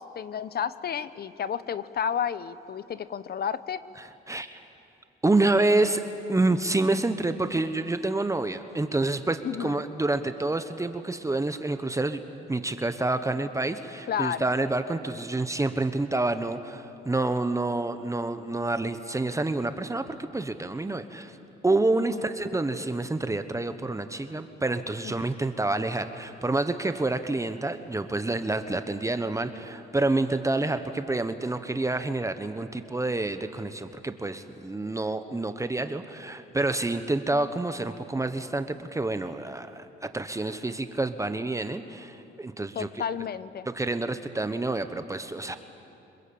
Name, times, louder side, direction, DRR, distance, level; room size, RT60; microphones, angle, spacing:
voice 1, 0.0-3.8 9.4-9.8 14.1-14.5 22.0-22.2 25.0-25.3 42.7-43.7, left 8 dB, 50° left, 15 dB, 0.9 m, -31 dB
voice 2, 4.0-4.6 5.2-6.0 6.3-21.4 21.6-42.9 43.7-45.6, right 2 dB, 15° right, 9 dB, 1.1 m, -28 dB
26.5 x 21.0 x 8.7 m, 2.8 s
cardioid pair, 90°, 20 cm